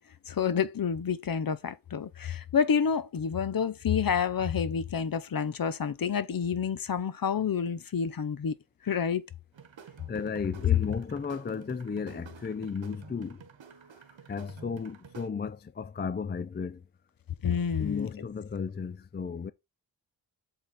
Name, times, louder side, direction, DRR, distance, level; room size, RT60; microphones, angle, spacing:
voice 1, 0.3-8.5 8.8-9.3 17.4-18.1, left 7 dB, 50° left, 0.7 m, -29 dB
sound 1, 9.5-15.3, right 6 dB, 80° right, 1.2 m, -51 dB
voice 2, 10.1-13.4 14.3-16.8 17.8-19.5, left 5 dB, 25° left, 0.4 m, -34 dB
7.9 x 3.8 x 4.1 m
wide cardioid pair, 115°, 45 cm